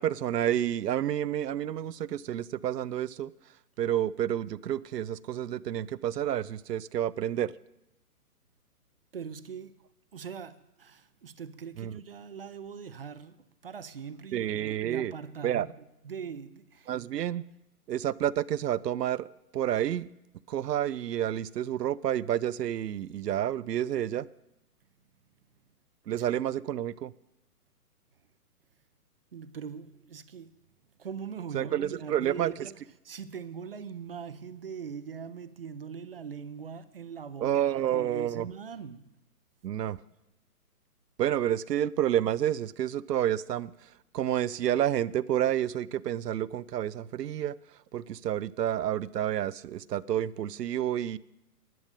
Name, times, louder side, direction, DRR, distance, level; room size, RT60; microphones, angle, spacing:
voice 1, 0.0-3.3 3.8-7.5 11.8-11.9 14.3-15.1 15.4-15.7 16.9-17.4 17.9-19.3 19.5-20.1 20.5-24.3 26.1-27.1 31.5-32.5 37.4-38.5 39.6-40.0 41.2-43.7 44.1-47.5 47.9-51.2, right 11 dB, 90° right, 0.6 m, -29 dB
voice 2, 9.1-9.8 10.1-17.0 26.2-26.3 29.3-30.5 31.0-39.2, right 6 dB, 40° right, 0.5 m, -42 dB
11.0 x 6.6 x 9.0 m
hypercardioid pair, 155°, 47 cm